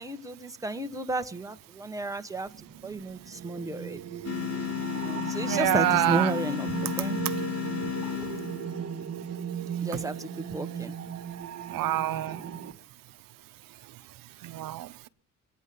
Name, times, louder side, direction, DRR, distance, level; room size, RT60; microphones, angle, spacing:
voice 1, 0.0-2.5 2.8-4.0 4.9-7.2 8.0-8.3 9.8-10.9, right 2 dB, 10° right, 1.2 m, -33 dB
sound 1, 2.5-12.7, right 8 dB, 50° right, 1.4 m, -37 dB
sound 2, 4.2-9.0, left 11 dB, 45° left, 2.8 m, -33 dB
voice 2, 5.5-6.4 11.7-12.5 14.4-15.1, right 15 dB, 85° right, 0.8 m, -27 dB
21.5 x 9.2 x 6.9 m
cardioid pair, 120°, 33 cm